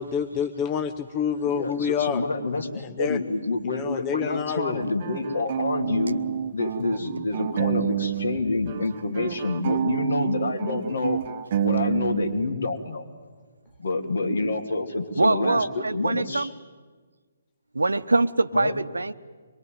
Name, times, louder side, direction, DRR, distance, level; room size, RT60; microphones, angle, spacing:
voice 1, 0.0-2.2 2.8-3.2 3.6-4.8, left 7 dB, 25° left, 9 dB, 0.8 m, -28 dB
voice 2, 1.4-2.7 3.0-6.2 6.5-11.2 11.6-13.0 13.8-16.5 18.5-18.8, left 3 dB, 60° left, 5 dB, 2.9 m, -27 dB
sound 1, 4.5-8.4 8.7-12.5, right 10 dB, 40° right, 1.0 m, -29 dB
voice 3, 15.2-16.5 17.7-19.1, right 2 dB, 75° right, 14 dB, 0.9 m, -23 dB
24.0 x 22.5 x 9.4 m, 1.4 s
figure-of-eight pair, 135°, 0 cm